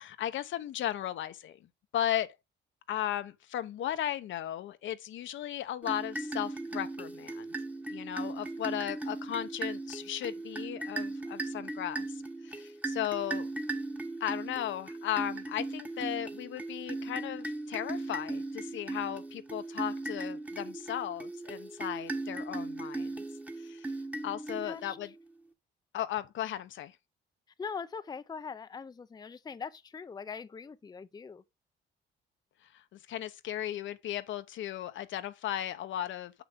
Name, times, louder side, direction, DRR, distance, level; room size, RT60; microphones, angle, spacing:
voice 1, 0.0-1.6 1.9-2.3 2.9-7.5 7.9-13.5 14.2-23.2 23.6-23.9 24.2-25.1 25.9-26.9 32.7-36.4, left 11 dB, 75° left, 0.8 m, -36 dB
sound 1, 5.8-25.0, right 2 dB, 5° right, 1.1 m, -38 dB
voice 2, 24.6-25.1 27.6-31.4, left 5 dB, 20° left, 0.5 m, -42 dB
6.7 x 6.1 x 3.5 m
cardioid pair, 90°, 20 cm